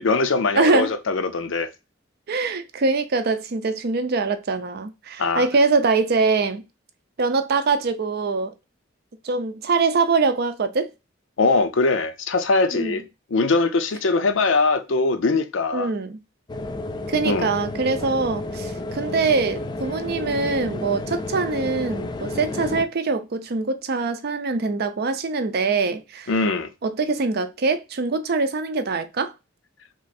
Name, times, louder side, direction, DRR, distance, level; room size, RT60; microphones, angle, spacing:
voice 1, 0.0-1.7 5.2-5.5 11.4-13.0 13.3-15.9 17.2-17.5 26.3-26.7, left 3 dB, 75° left, 0.6 m, -21 dB
voice 2, 0.5-0.9 2.3-6.7 7.2-8.5 9.2-10.9 12.7-13.0 15.7-16.2 17.1-26.3 26.8-29.3, right 4 dB, 55° right, 0.5 m, -23 dB
sound 1, 16.5-22.8, left 2 dB, 25° left, 0.3 m, -31 dB
3.1 x 2.6 x 4.0 m
head